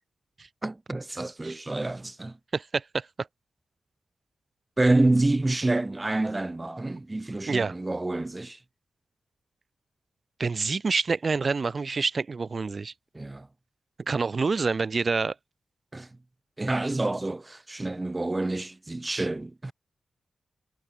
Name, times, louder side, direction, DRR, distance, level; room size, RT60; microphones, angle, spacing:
voice 1, 0.6-2.4 4.8-8.6 13.1-13.5 15.9-16.1 16.6-19.7, right 2 dB, 25° right, 1.4 m, -27 dB
voice 2, 2.5-3.3 7.5-7.7 10.4-12.9 14.1-15.3, right 4 dB, 50° right, 2.3 m, -27 dB
cardioid pair, 45°, 0 cm